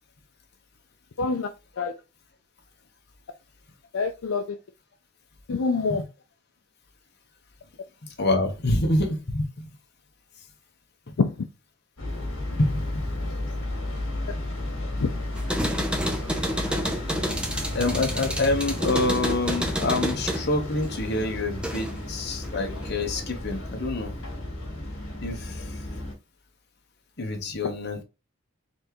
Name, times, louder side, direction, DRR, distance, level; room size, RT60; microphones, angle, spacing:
voice 1, 1.2-1.5 1.8-1.9 3.9-4.6 5.5-6.0 11.2-11.4 15.0-15.1, left 4 dB, 85° left, 0.5 m, -25 dB
voice 2, 8.2-9.7 12.6-13.1 17.5-24.1 25.2-25.7 27.2-28.0, left 2 dB, 55° left, 1.0 m, -27 dB
sound 1, 12.0-26.1, left 1 dB, 70° left, 1.7 m, -33 dB
sound 2, 15.4-22.1 22.4-23.3, equal, 5° right, 0.6 m, -30 dB
4.3 x 3.4 x 3.0 m
head